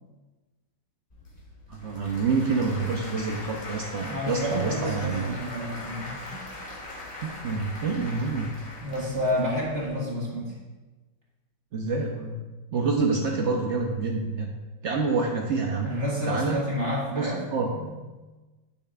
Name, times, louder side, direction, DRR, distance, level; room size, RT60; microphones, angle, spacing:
Applause / Crowd, 1.1-9.9, left 2 dB, 30° left, 1.8 m, -41 dB
voice 1, 1.7-5.3 7.2-8.5 11.7-12.4 12.7-14.5 14.8-15.9 16.3-16.6 17.1-17.7, right 4 dB, 80° right, 1 dB, 0.6 m, -27 dB
voice 2, 4.0-6.4 8.8-10.5 15.8-17.4 17.7-18.0, equal, 35° right, -5 dB, 1.9 m, -29 dB
9.9 x 7.2 x 2.4 m, 1.2 s
omnidirectional pair, 2.1 m